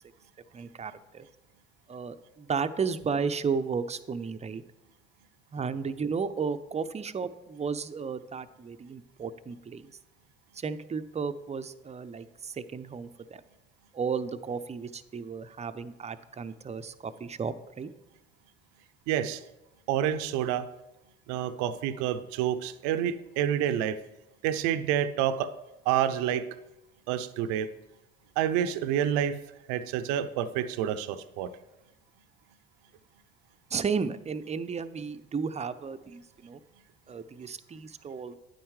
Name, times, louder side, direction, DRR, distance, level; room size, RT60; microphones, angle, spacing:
voice 1, 0.5-1.3 1.9-4.6 5.5-9.9 10.5-13.4 13.9-17.9 33.7-36.6 37.1-38.4, right 5 dB, 25° right, 11 dB, 0.6 m, -33 dB
voice 2, 19.1-19.4 19.9-20.7 21.3-24.0 24.4-25.5 25.9-26.5 27.1-27.7 28.4-29.4 29.7-31.5, right 10 dB, 70° right, 12 dB, 0.6 m, -28 dB
9.3 x 8.8 x 3.2 m, 0.97 s
hypercardioid pair, 65°, 29 cm